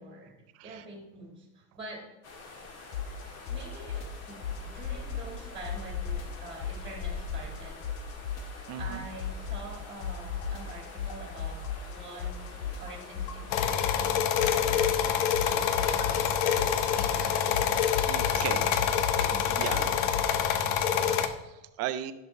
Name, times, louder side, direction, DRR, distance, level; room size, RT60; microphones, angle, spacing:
voice 1, 0.0-2.1 3.5-7.9 8.8-17.8 18.3-20.4, right 2 dB, 10° right, 0 dB, 1.7 m, -46 dB
sound 1, 2.2-18.6, left 3 dB, 35° left, 1.6 m, -46 dB
sound 2, 2.9-3.2 3.5-5.4 5.6-7.6 7.8-9.8 10.0-14.1 14.4-20.3, left 7 dB, 85° left, 1.2 m, -35 dB
voice 2, 8.7-9.0 18.1-18.6 19.6-19.9 20.6-22.1, right 12 dB, 35° right, 11 dB, 0.5 m, -37 dB
sound 3, 13.5-21.3, left 9 dB, 65° left, 0.8 m, -26 dB
10.5 x 6.0 x 3.2 m, 0.97 s
supercardioid pair, 135°, 45 cm